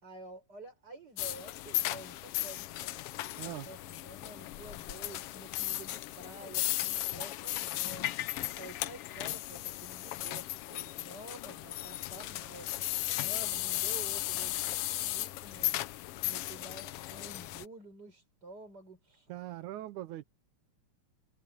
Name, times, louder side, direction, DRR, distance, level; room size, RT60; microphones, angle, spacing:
voice 1, 0.0-3.0 3.4-8.1 8.6-12.7 13.2-15.8 16.2-19.3, right 2 dB, 30° right, 6.6 m, -50 dB
sound 1, 1.2-17.6, left 15 dB, 90° left, 1.3 m, -36 dB
voice 2, 3.4-3.7 19.3-20.3, right 14 dB, 85° right, 2.4 m, -41 dB
omnidirectional pair, 3.4 m